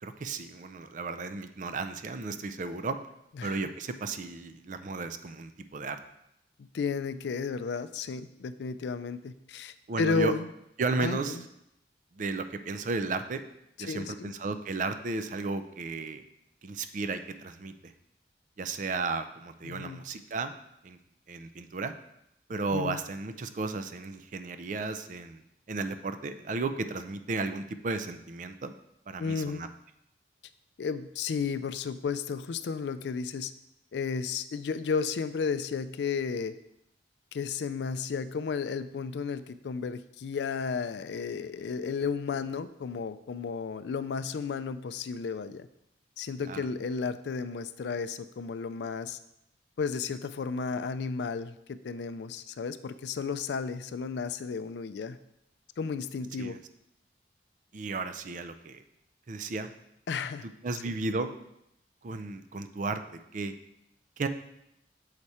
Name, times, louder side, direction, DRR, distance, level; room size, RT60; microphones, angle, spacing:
voice 1, 0.0-3.0 3.4-6.0 9.9-10.3 10.8-11.4 12.1-13.4 13.8-16.2 16.6-17.9 18.6-20.5 20.8-21.0 21.3-21.9 22.5-25.4 25.7-28.7 29.1-29.7 46.5-46.7 56.4-56.6 57.7-58.8 59.3-59.7 60.6-61.3 62.0-63.0 63.3-63.5 64.2-64.3, right 3 dB, 45° right, 9 dB, 0.4 m, -34 dB
voice 2, 6.6-10.5 11.0-11.4 13.8-14.3 19.6-20.0 22.7-23.0 29.2-29.6 30.8-33.5 33.9-36.5 37.3-45.7 46.2-49.2 49.8-55.2 55.8-56.6 60.1-60.5 60.8-60.9, left 5 dB, 75° left, 13 dB, 0.4 m, -33 dB
6.6 x 4.7 x 4.2 m, 0.80 s
head